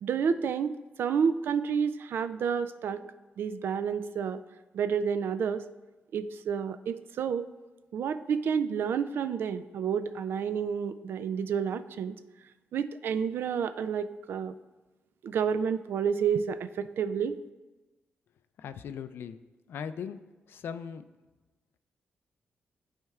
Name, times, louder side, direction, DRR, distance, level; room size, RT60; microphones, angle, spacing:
voice 1, 0.0-3.0 3.4-4.4 4.7-5.6 6.1-7.5 7.9-12.1 12.7-14.5 15.2-17.4, right 7 dB, 65° right, 12 dB, 0.3 m, -30 dB
voice 2, 18.6-19.4 19.7-20.2 20.5-21.0, left 7 dB, 70° left, 11 dB, 0.4 m, -38 dB
12.5 x 4.4 x 2.4 m, 1.2 s
wide cardioid pair, 165°, 4 cm